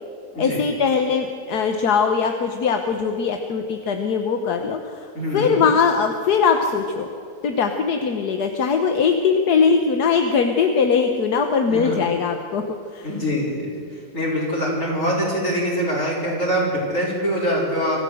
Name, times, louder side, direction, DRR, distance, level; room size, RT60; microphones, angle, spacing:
voice 1, 0.4-5.1 5.3-7.1 7.4-12.6 12.9-13.1, left 5 dB, 80° left, 5 dB, 1.7 m, -21 dB
voice 2, 5.1-5.6 11.7-12.0 13.0-18.0, equal, 50° left, -6 dB, 5.3 m, -24 dB
25.0 x 14.0 x 7.9 m, 2.5 s
omnidirectional pair, 1.7 m